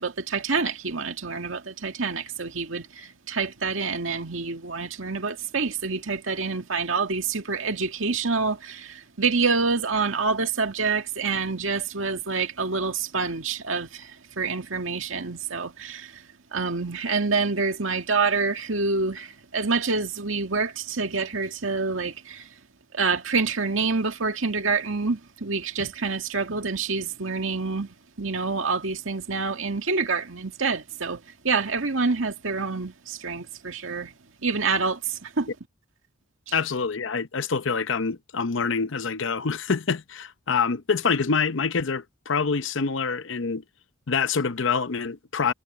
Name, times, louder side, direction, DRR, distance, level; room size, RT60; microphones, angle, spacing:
voice 1, 0.0-16.2 16.5-22.5 22.9-27.9 28.2-34.1 34.4-35.5, right 4 dB, 90° right, 2.0 m, -27 dB
voice 2, 36.5-43.6 44.1-45.5, left 5 dB, 70° left, 0.8 m, -26 dB
head